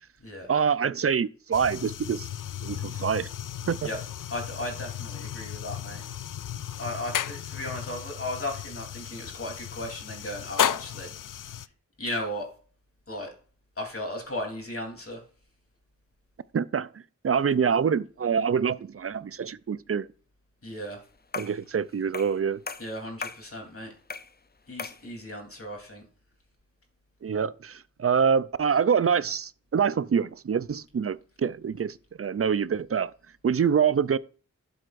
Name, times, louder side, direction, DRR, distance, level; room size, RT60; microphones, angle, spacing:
voice 1, 0.5-2.3 2.6-3.3 3.7-3.9 16.5-16.9 17.2-20.1 21.4-22.6 27.2-33.1 33.4-34.2, right 7 dB, 50° right, 0.5 m, -25 dB
sound 1, 1.5-11.7, left 10 dB, 85° left, 0.5 m, -34 dB
voice 2, 4.3-6.0 6.8-11.1 12.0-12.5 13.1-13.3 13.8-15.2 20.6-21.0 22.8-23.9 24.7-26.0, left 1 dB, 45° left, 3.3 m, -35 dB
sound 2, 21.3-21.6 22.1-22.4 22.7-23.5 24.1-24.4 24.8-25.1, left 4 dB, 30° left, 0.6 m, -37 dB
12.0 x 7.7 x 2.5 m
wide cardioid pair, 75°, 31 cm